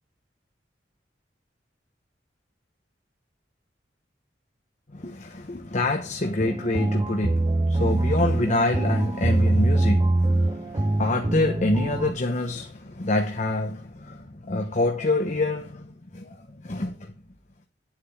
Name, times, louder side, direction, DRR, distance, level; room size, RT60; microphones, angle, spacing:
voice 1, 4.9-16.3 16.6-17.0, left 2 dB, 40° left, 1.0 m, -26 dB
sound 1, 6.4-12.1, right 2 dB, 20° right, 0.5 m, -23 dB
11.0 x 7.5 x 3.6 m
head